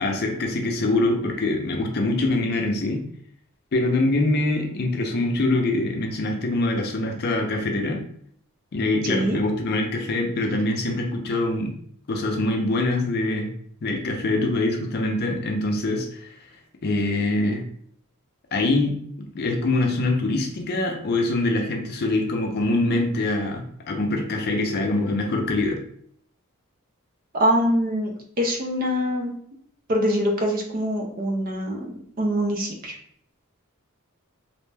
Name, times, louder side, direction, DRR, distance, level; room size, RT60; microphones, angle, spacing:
voice 1, 0.0-3.0 3.7-8.0 8.7-11.7 12.1-13.5 13.8-16.5 16.8-17.6 18.5-19.0 19.3-25.8, left 2 dB, 45° left, 2 dB, 0.5 m, -24 dB
voice 2, 9.0-9.4 27.3-29.3 29.9-32.9, equal, 40° right, 2 dB, 0.5 m, -24 dB
2.5 x 2.1 x 3.2 m, 0.64 s
head